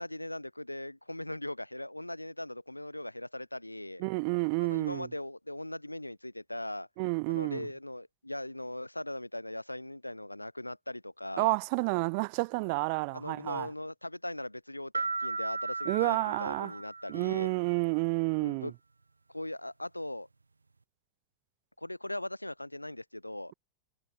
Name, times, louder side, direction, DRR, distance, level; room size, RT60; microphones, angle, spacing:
voice 1, 0.0-4.0 4.6-6.9 7.3-11.6 13.1-17.5 18.4-18.7 19.3-20.3 21.8-23.5, left 1 dB, 85° left, 2.4 m, -39 dB
voice 2, 4.0-5.1 7.0-7.7 11.4-13.7 15.9-16.7 17.1-18.7, right 33 dB, 45° right, 1.0 m, -30 dB
sound 1, 14.9-17.6, right 3 dB, 80° right, 2.1 m, -36 dB
figure-of-eight pair, 90°, 0 cm